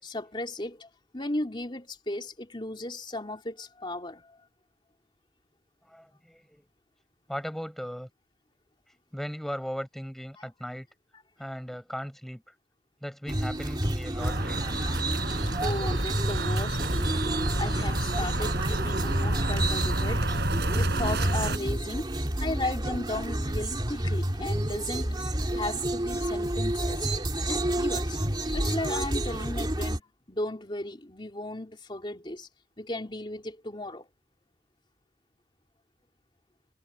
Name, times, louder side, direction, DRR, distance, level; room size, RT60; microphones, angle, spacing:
voice 1, 0.0-4.4 10.4-10.5 11.1-11.2 15.6-17.2 17.6-20.3 20.8-22.1 22.4-25.2 25.5-27.1 27.4-28.2 28.5-32.5 32.8-34.1, left 1 dB, 25° left, 3.6 m, -35 dB
voice 2, 5.9-6.6 7.3-8.1 9.1-10.9 11.4-12.4 13.0-14.9, equal, ahead, 5.8 m, -37 dB
sound 1, 13.3-30.0, right 1 dB, 25° right, 2.5 m, -29 dB
sound 2, 14.2-21.6, right 1 dB, 60° right, 4.4 m, -30 dB
head